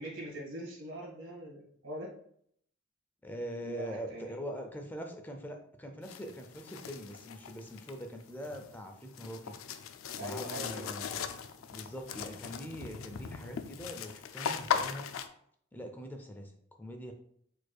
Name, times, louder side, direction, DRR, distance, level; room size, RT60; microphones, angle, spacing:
voice 1, 0.0-2.1 3.6-4.3 10.2-10.9, equal, 70° right, -3 dB, 1.6 m, -42 dB
voice 2, 3.2-9.6 10.2-11.3 11.7-15.1 15.7-16.5 16.8-17.1, equal, 10° left, 4 dB, 0.5 m, -43 dB
sound 1, 6.0-15.3, left 7 dB, 85° left, 0.4 m, -39 dB
4.6 x 4.5 x 2.3 m, 0.67 s
head